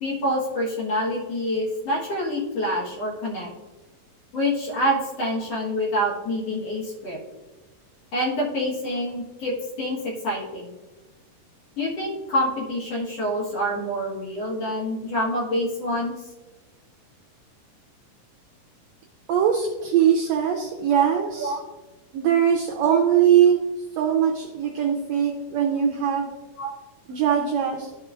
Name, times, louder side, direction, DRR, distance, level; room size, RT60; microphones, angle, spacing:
voice 1, 0.0-3.5 4.3-7.2 8.1-10.8 11.8-16.2 21.4-21.6 22.8-23.0 26.6-26.7, equal, 55° left, -3 dB, 2.1 m, -26 dB
voice 2, 19.3-21.6 22.1-23.6 23.9-26.3 27.1-27.9, right 8 dB, 85° right, 1 dB, 1.5 m, -21 dB
13.0 x 4.8 x 2.4 m, 1.2 s
omnidirectional pair, 3.8 m